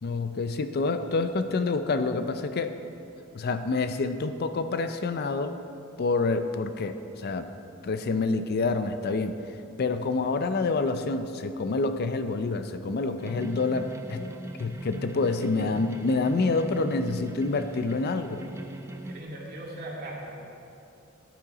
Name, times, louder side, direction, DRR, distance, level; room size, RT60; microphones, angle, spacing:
voice 1, 0.0-2.7 3.3-5.5 6.0-7.5 7.8-9.3 9.8-14.3 14.6-18.4, left 3 dB, 50° left, 9 dB, 0.4 m, -27 dB
sound 1, 13.2-19.2, right 1 dB, 15° right, 0.5 m, -39 dB
voice 2, 18.9-20.4, right 1 dB, 45° right, -3 dB, 2.1 m, -39 dB
11.0 x 8.7 x 4.9 m, 2.7 s
head